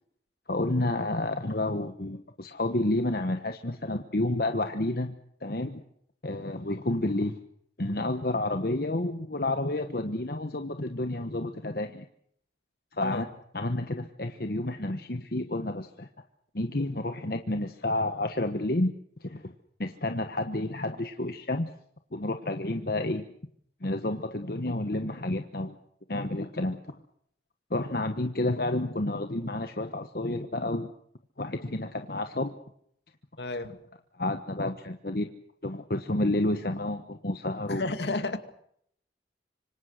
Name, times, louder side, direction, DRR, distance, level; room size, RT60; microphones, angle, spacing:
voice 1, 0.5-5.1 5.4-5.8 6.2-7.4 7.8-12.0 12.9-13.3 13.5-16.1 16.5-18.9 19.2-19.5 19.8-21.7 22.1-23.3 23.8-25.7 26.1-26.9 27.7-30.9 31.4-32.5 34.2-35.3 35.6-37.9, left 2 dB, 55° left, 7 dB, 1.2 m, -30 dB
voice 2, 33.4-33.8 34.6-34.7 37.7-38.4, left 2 dB, 70° left, 8 dB, 2.4 m, -32 dB
26.0 x 25.5 x 6.5 m, 0.69 s
head